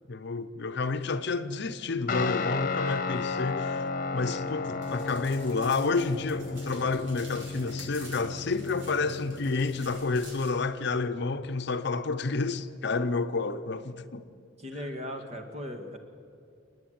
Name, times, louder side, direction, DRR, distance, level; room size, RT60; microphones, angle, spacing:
voice 1, 0.1-3.9 4.1-14.3, left 3 dB, 60° left, 0.7 m, -30 dB
Guitar, 2.1-10.9, left 4 dB, 45° left, 1.1 m, -34 dB
sound 1, 4.8-10.5, right 1 dB, 75° right, 6.7 m, -49 dB
voice 2, 14.6-16.0, equal, 35° right, 1.9 m, -38 dB
29.0 x 9.6 x 9.3 m
head